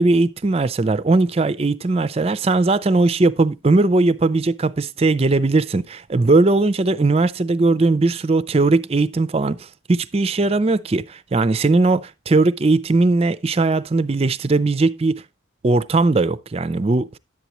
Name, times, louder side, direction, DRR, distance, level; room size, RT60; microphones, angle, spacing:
voice 1, 0.0-15.2 15.6-17.1, right 3 dB, 30° right, 0.4 m, -19 dB
10.5 x 8.2 x 3.0 m
head